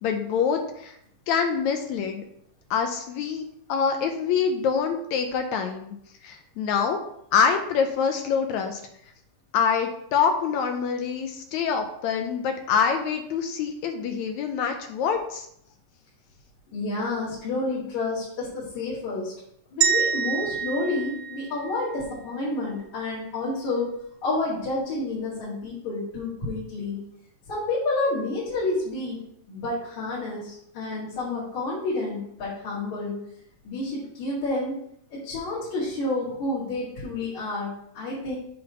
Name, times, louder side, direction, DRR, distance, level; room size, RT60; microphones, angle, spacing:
voice 1, 0.0-0.9 1.3-2.2 2.7-3.4 3.7-5.9 6.2-7.0 7.3-8.8 9.5-15.5, left 6 dB, 75° left, 5 dB, 1.7 m, -25 dB
voice 2, 16.7-19.3 19.7-23.9 24.2-27.0 27.5-29.2 29.5-33.2 33.6-34.8 35.1-38.4, left 2 dB, 60° left, -9 dB, 3.4 m, -29 dB
sound 1, 19.8-22.1, right 8 dB, 75° right, 1.9 m, -26 dB
7.7 x 3.9 x 5.9 m, 0.72 s
omnidirectional pair, 3.8 m